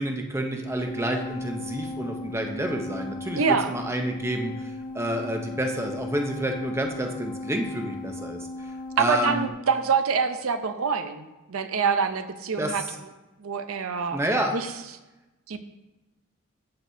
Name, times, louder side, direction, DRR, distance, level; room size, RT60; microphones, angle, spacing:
voice 1, 0.0-8.7 9.0-9.5 12.6-13.0 14.1-14.6, right 1 dB, 10° right, 3 dB, 0.7 m, -29 dB
sound 1, 0.6-9.5, left 2 dB, 20° left, 0.7 m, -36 dB
voice 2, 3.4-3.7 9.0-12.8 13.4-14.2 14.5-14.7 15.5-15.6, right 6 dB, 80° right, 9 dB, 0.6 m, -25 dB
14.5 x 6.0 x 2.7 m, 1.1 s
head